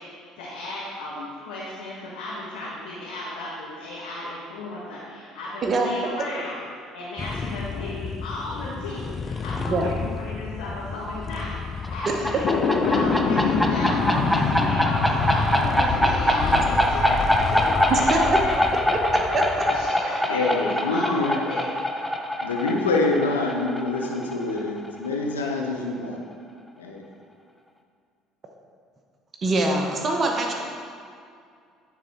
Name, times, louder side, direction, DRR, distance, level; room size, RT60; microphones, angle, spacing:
voice 1, 0.0-6.6 6.9-12.5 12.9-18.6 19.7-21.7, left 2 dB, 75° left, -8 dB, 1.4 m, -34 dB
sound 1, 7.2-19.9, left 5 dB, 35° left, 0.3 m, -34 dB
sound 2, 11.8-25.2, left 1 dB, ahead, 0.6 m, -24 dB
sound 3, 12.4-18.5, left 4 dB, 55° left, 0.7 m, -26 dB
voice 2, 19.3-19.6 29.4-30.5, right 2 dB, 40° right, 2 dB, 0.8 m, -23 dB
voice 3, 20.3-21.4 22.4-26.2 26.8-27.0, left 3 dB, 90° left, 1 dB, 0.7 m, -26 dB
9.6 x 4.1 x 4.2 m, 2.3 s
hypercardioid pair, 60°, 0 cm